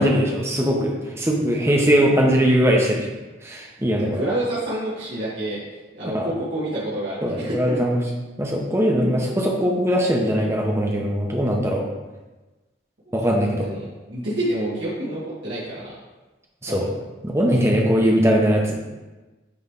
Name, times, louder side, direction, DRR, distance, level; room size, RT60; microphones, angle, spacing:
voice 1, 0.0-3.1 3.4-4.2 6.1-6.3 7.2-8.0 8.4-11.8 13.1-13.7 16.6-16.8 17.2-18.8, equal, 15° right, -1 dB, 0.8 m, -20 dB
voice 2, 4.0-5.6 5.9-7.8 13.6-15.9 16.7-16.9, right 1 dB, 85° right, -10 dB, 2.0 m, -28 dB
9.6 x 3.3 x 3.7 m, 1.2 s
head